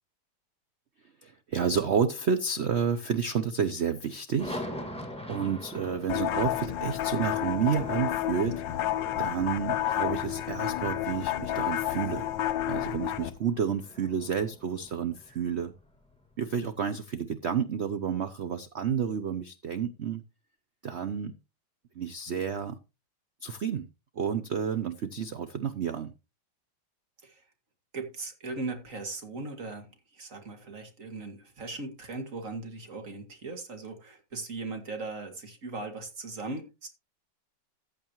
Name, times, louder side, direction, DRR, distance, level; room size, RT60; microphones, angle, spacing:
voice 1, 1.2-4.6 5.3-8.6 9.2-12.3 12.6-15.7 16.4-20.2 20.8-21.3 22.0-22.8 23.4-23.9 24.2-26.1, right 7 dB, 75° right, 0.6 m, -30 dB
sound 1, 4.4-16.6, left 1 dB, 5° left, 1.7 m, -44 dB
sound 2, 6.1-13.3, left 12 dB, 70° left, 1.4 m, -30 dB
voice 2, 27.9-36.9, right 3 dB, 40° right, 2.3 m, -38 dB
14.5 x 8.6 x 3.0 m
omnidirectional pair, 2.1 m